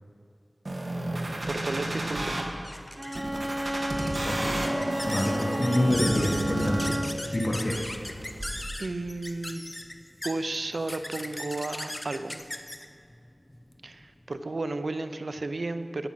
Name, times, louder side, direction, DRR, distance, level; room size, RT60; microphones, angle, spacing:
sound 1, 0.7-2.4 3.2-7.2 7.7-8.6, right 1 dB, 55° right, 1.4 m, -32 dB
voice 1, 1.4-2.5 7.1-7.4 8.8-9.6 10.2-12.4 13.8-16.1, right 2 dB, 80° right, 10 dB, 0.5 m, -33 dB
sound 2, 2.6-14.4, left 1 dB, 25° left, 0.7 m, -39 dB
Bowed string instrument, 3.0-7.4, equal, 30° right, 1.2 m, -32 dB
voice 2, 5.1-6.9 7.3-7.7, left 1 dB, 40° left, -2 dB, 1.3 m, -27 dB
16.0 x 6.2 x 5.7 m, 2.4 s
wide cardioid pair, 65°, 0 cm